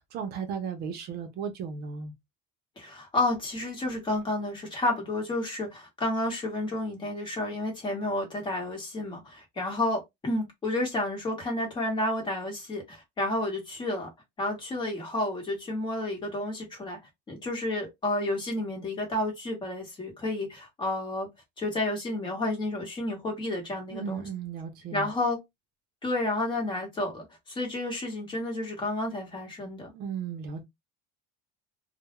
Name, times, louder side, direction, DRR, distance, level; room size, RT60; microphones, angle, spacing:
voice 1, 0.0-2.1 23.9-25.1 29.9-30.6, right 6 dB, 50° right, 0.6 m, -35 dB
voice 2, 2.8-14.1 14.4-17.0 17.3-21.3 21.6-24.3 24.9-25.4 26.0-29.9, left 2 dB, 20° left, 1.0 m, -31 dB
2.2 x 2.1 x 2.9 m
cardioid pair, 155°, 21 cm